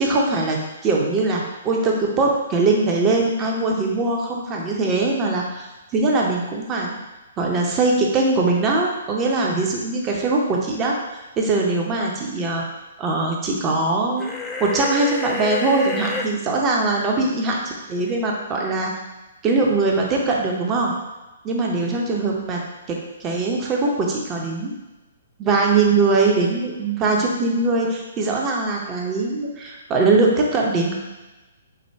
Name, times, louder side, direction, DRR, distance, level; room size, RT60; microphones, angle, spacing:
voice 1, 0.0-5.7 5.9-7.0 7.4-10.9 11.4-12.6 13.0-17.6 17.9-18.9 19.4-20.9 21.4-22.6 23.2-24.8 25.4-31.0, right 3 dB, 20° right, -1 dB, 0.6 m, -21 dB
sound 1, 14.2-16.3, left 4 dB, 10° left, 0.3 m, -29 dB
4.7 x 2.2 x 3.3 m, 1.1 s
figure-of-eight pair, 125°, 0 cm